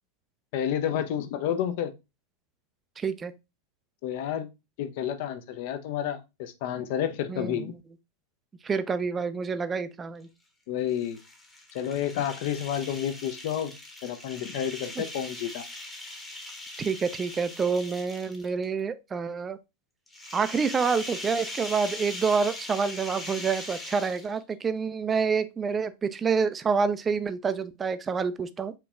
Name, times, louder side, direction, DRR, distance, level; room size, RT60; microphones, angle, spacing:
voice 1, 0.5-1.9 4.0-4.5 4.8-7.7 10.7-11.2 11.7-13.7 14.0-15.6, left 10 dB, 50° left, 0.5 m, -30 dB
voice 2, 3.0-3.3 7.3-7.8 8.6-10.3 15.0-15.1 16.8-19.6 20.3-28.7, right 5 dB, 20° right, 0.3 m, -28 dB
sound 1, 10.9-18.6 20.1-24.5, left 1 dB, 10° left, 0.9 m, -40 dB
4.4 x 2.9 x 2.3 m
figure-of-eight pair, 90°, 0 cm